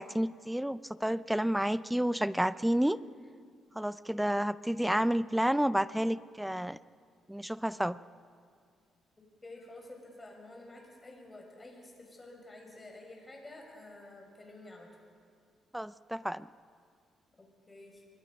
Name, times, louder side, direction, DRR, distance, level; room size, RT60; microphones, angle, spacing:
voice 1, 0.0-3.0 3.8-6.8 7.3-8.0 15.7-16.5, equal, 5° right, 16 dB, 0.5 m, -30 dB
voice 2, 9.4-14.9 17.4-18.0, left 2 dB, 20° left, 1 dB, 6.2 m, -50 dB
25.0 x 22.0 x 5.4 m, 2.2 s
cardioid pair, 90°, 0 cm